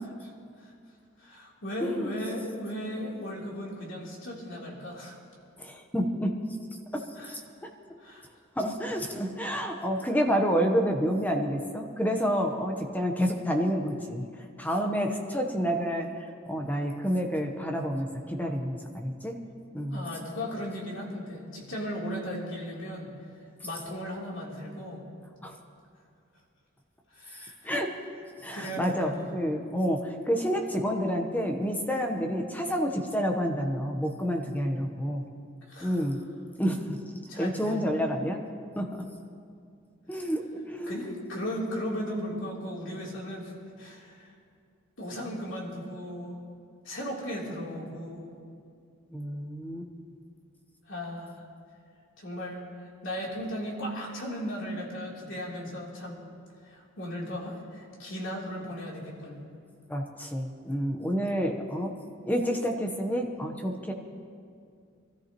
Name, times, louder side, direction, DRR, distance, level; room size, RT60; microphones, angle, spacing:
voice 1, 1.2-5.1 7.2-7.4 8.0-8.2 19.9-23.1 23.6-25.1 27.1-27.7 28.5-29.3 35.7-36.1 37.3-37.9 40.9-44.3 45.0-46.4 46.8-48.3 50.9-51.4 52.2-56.2 56.6-59.4, equal, 70° left, -4 dB, 3.3 m, -36 dB
voice 2, 1.8-2.1 5.6-6.3 6.9-7.4 8.6-14.2 14.6-19.4 19.7-20.1 25.4-25.5 27.6-27.9 28.4-35.2 35.8-36.2 36.6-37.0 37.4-38.4 38.8-39.0 40.1-41.1 49.1-49.9 59.9-61.9 62.3-63.9, equal, 10° left, 3 dB, 1.0 m, -29 dB
24.5 x 13.5 x 3.0 m, 2.4 s
head